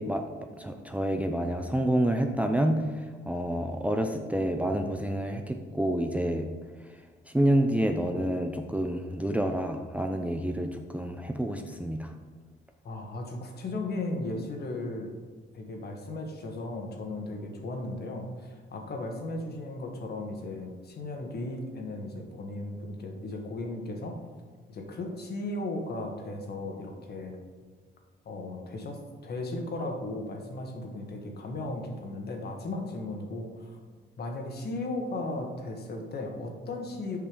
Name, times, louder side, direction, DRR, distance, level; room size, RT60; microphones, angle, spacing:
voice 1, 0.0-6.5 7.3-12.1, right 1 dB, 5° right, 4 dB, 0.6 m, -28 dB
voice 2, 12.8-15.1 15.5-24.2 24.7-27.4 28.2-33.8 34.2-37.2, left 2 dB, 55° left, 3 dB, 1.5 m, -36 dB
7.0 x 5.4 x 5.1 m, 1.5 s
cardioid pair, 90°, 20 cm